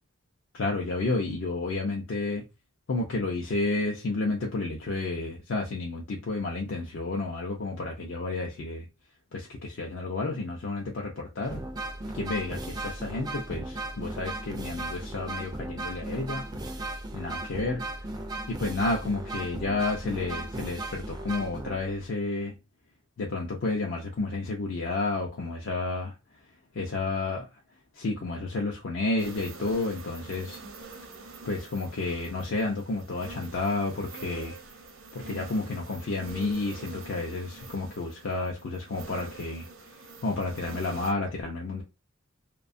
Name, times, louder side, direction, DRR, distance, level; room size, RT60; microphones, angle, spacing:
voice 1, 0.5-2.4 2.9-8.9 9.3-11.6 12.1-16.5 17.1-17.8 18.5-22.5 23.2-26.1 26.8-27.6 27.9-30.6 31.4-34.6 35.1-41.8, left 3 dB, 60° left, 0.4 m, -31 dB
sound 1, 11.4-22.1, right 2 dB, 20° right, 0.3 m, -36 dB
sound 2, 29.2-41.1, right 3 dB, 70° right, 0.7 m, -45 dB
2.7 x 2.2 x 2.4 m
head